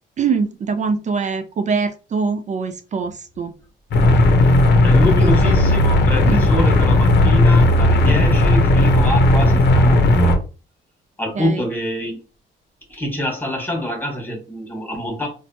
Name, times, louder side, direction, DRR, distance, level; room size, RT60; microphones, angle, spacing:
voice 1, 0.2-3.5 5.1-5.6 6.2-6.4 11.4-11.6, right 5 dB, 40° right, 8 dB, 0.4 m, -23 dB
sound 1, 3.9-10.4, left 1 dB, 60° left, 0.7 m, -14 dB
voice 2, 4.8-10.4 11.2-12.2 12.9-15.3, left 1 dB, 10° left, 0 dB, 1.3 m, -25 dB
2.9 x 2.1 x 2.7 m, 0.33 s
cardioid pair, 90°, 20 cm